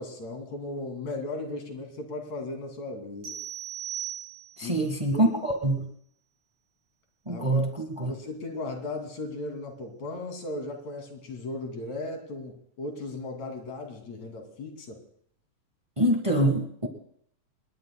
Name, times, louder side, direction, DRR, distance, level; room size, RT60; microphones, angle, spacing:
voice 1, 0.0-3.4 4.6-5.3 7.3-7.7 8.0-15.0, left 2 dB, 65° left, 3 dB, 4.0 m, -36 dB
sound 1, 3.2-4.8, right 10 dB, 80° right, 6.0 m, -37 dB
voice 2, 4.6-5.8 7.3-7.6 8.0-8.1 16.0-16.9, right 1 dB, 35° right, 3 dB, 0.4 m, -24 dB
27.5 x 21.0 x 2.3 m, 0.65 s
omnidirectional pair, 3.4 m